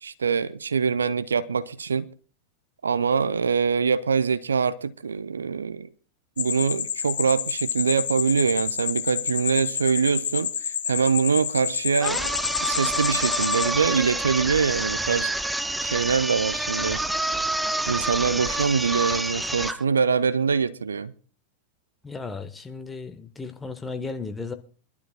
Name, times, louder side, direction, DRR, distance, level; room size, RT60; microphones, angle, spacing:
voice 1, 0.0-2.1 2.8-5.9 6.4-12.3 12.6-15.3 15.8-17.0 17.9-21.1, right 5 dB, 70° right, 0.5 m, -24 dB
sound 1, 6.4-13.7, left 9 dB, 65° left, 0.9 m, -29 dB
sound 2, 12.0-19.8, right 2 dB, 5° right, 0.5 m, -28 dB
voice 2, 22.0-24.5, left 4 dB, 10° left, 1.1 m, -35 dB
25.0 x 12.0 x 2.2 m
figure-of-eight pair, 90°, 0 cm